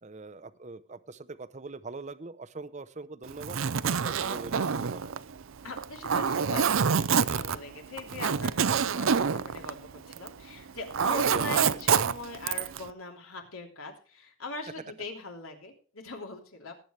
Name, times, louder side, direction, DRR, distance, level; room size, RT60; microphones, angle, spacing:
voice 1, 0.0-3.6 3.9-5.2 11.2-11.5, right 3 dB, 35° right, 13 dB, 0.7 m, -42 dB
Zipper (clothing), 3.3-10.4 10.7-12.8, right 6 dB, 70° right, 0.5 m, -27 dB
voice 2, 5.6-16.7, left 2 dB, 80° left, 3 dB, 3.1 m, -41 dB
19.0 x 8.8 x 3.2 m, 0.37 s
head